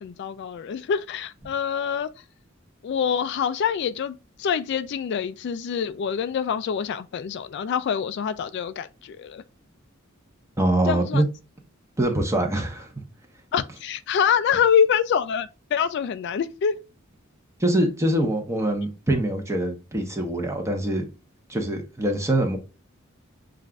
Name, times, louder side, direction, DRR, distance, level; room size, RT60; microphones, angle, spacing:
voice 1, 0.0-2.1 2.8-9.4 10.9-11.2 13.5-16.8, left 7 dB, 55° left, 0.3 m, -25 dB
voice 2, 10.6-11.3 12.0-12.9 17.6-21.1 21.5-22.6, right 1 dB, 15° right, 1.0 m, -24 dB
7.4 x 2.5 x 2.3 m
head